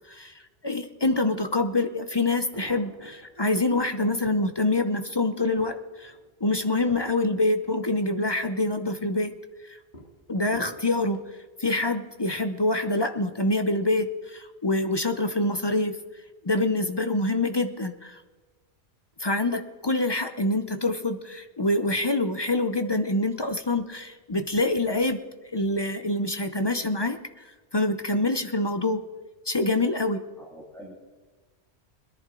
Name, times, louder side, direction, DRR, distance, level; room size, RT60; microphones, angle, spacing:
voice 1, 0.6-6.1 6.4-9.3 9.7-9.8 10.3-11.2 11.6-16.0 16.4-18.2 19.2-25.2 25.5-29.0 29.5-30.2, left 2 dB, 30° left, 8 dB, 0.6 m, -26 dB
sound 1, 2.5-3.3 3.8-4.5 5.0-8.4 8.8-9.3 9.9-11.3 12.1-12.4 12.7-12.8, left 1 dB, 45° left, 2.3 m, -49 dB
voice 2, 30.4-31.0, equal, ahead, -5 dB, 2.3 m, -46 dB
21.0 x 10.5 x 3.8 m, 1.3 s
omnidirectional pair, 1.1 m